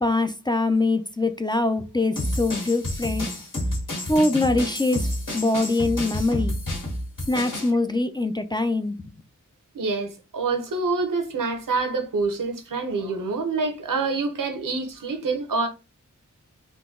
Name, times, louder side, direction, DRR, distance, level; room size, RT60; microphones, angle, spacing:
voice 1, 0.0-3.3 4.0-6.6 7.3-9.1, left 2 dB, 15° left, 0.4 m, -23 dB
sound 1, 2.2-7.7, left 1 dB, 80° left, 1.8 m, -29 dB
voice 2, 9.7-15.7, right 3 dB, 85° right, 0.9 m, -26 dB
3.8 x 2.3 x 3.7 m
wide cardioid pair, 90°, 32 cm